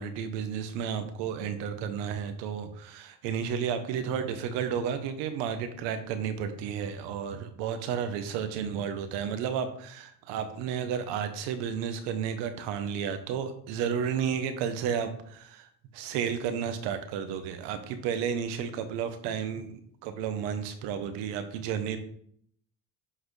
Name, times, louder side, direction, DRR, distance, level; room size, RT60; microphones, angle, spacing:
voice 1, 0.0-22.0, right 7 dB, 85° right, 9 dB, 0.9 m, -32 dB
7.6 x 4.0 x 3.2 m, 0.64 s
cardioid pair, 100°, 41 cm